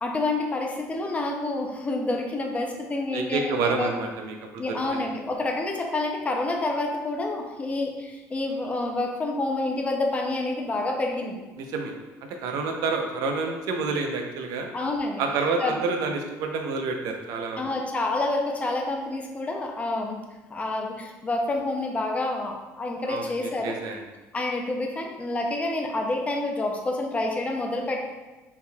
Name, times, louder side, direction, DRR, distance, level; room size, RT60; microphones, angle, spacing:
voice 1, 0.0-3.9 4.6-11.4 14.7-15.2 15.6-15.7 17.6-20.2 20.5-23.7 24.3-28.1, left 2 dB, 20° left, 1 dB, 0.6 m, -28 dB
voice 2, 3.1-4.6 4.9-5.0 11.6-11.9 12.4-14.7 15.2-17.6 23.1-23.3 23.6-24.0, right 4 dB, 75° right, 3 dB, 0.6 m, -28 dB
4.3 x 3.4 x 2.3 m, 1.2 s
cardioid pair, 115°, 6 cm